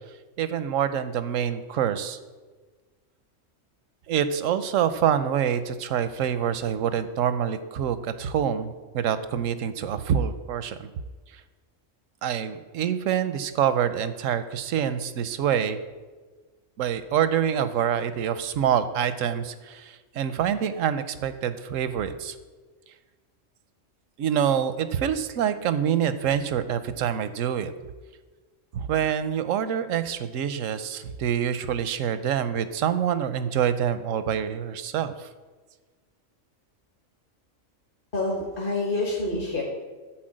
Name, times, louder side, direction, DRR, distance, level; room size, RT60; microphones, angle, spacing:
voice 1, 0.4-2.2 4.1-10.9 12.2-15.8 16.8-22.3 24.2-27.7 28.7-35.3, right 9 dB, 85° right, 12 dB, 1.0 m, -26 dB
voice 2, 38.1-39.6, left 2 dB, 45° left, -3 dB, 1.5 m, -27 dB
11.5 x 4.5 x 7.6 m, 1.4 s
omnidirectional pair, 1.3 m